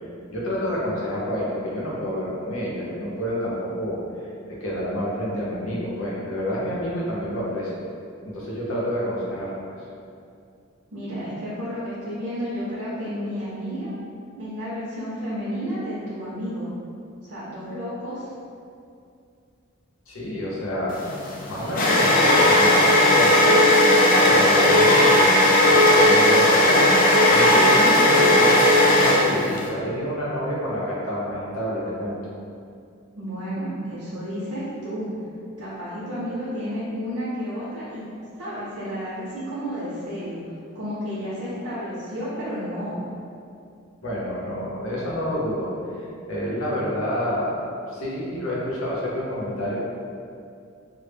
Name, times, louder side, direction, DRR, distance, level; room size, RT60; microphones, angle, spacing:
voice 1, 0.3-4.0 4.5-7.7 8.2-9.5 20.1-21.0 21.5-23.9 24.3-26.8 27.3-32.2 44.0-46.0 46.3-47.5 47.9-49.8, equal, 85° left, -6 dB, 0.6 m, -28 dB
voice 2, 10.9-13.9 14.3-16.7 17.3-18.3 33.2-35.1 35.6-38.1 38.4-40.4 40.7-43.0, equal, 60° right, -9 dB, 0.5 m, -31 dB
sound 1, 20.9-29.7, left 1 dB, 40° left, 0.3 m, -16 dB
2.0 x 2.0 x 3.2 m, 2.4 s
head